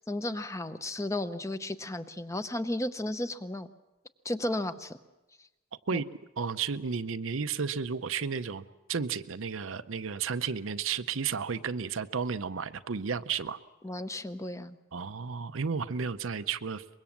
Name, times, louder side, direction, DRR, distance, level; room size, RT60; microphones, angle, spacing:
voice 1, 0.1-3.7 4.2-5.0 5.9-6.0 13.8-14.8, left 1 dB, 15° left, 11 dB, 0.7 m, -34 dB
voice 2, 6.4-13.6 14.9-16.8, right 6 dB, 75° right, 12 dB, 0.7 m, -33 dB
24.0 x 22.0 x 7.3 m, 1.1 s
head